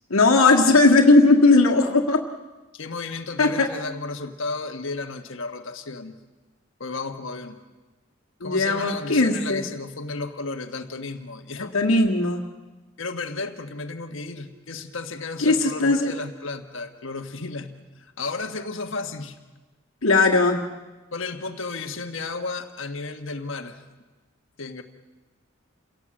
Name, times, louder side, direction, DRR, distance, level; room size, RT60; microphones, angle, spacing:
voice 1, 0.1-2.2 3.4-3.7 8.4-9.6 11.7-12.4 15.4-16.1 20.0-20.6, left 3 dB, 80° left, 0 dB, 1.7 m, -18 dB
voice 2, 2.7-6.1 6.8-7.6 8.4-11.8 13.0-19.4 21.1-23.8 24.6-24.8, left 3 dB, 65° left, 7 dB, 1.4 m, -33 dB
28.5 x 17.5 x 7.7 m, 1.2 s
head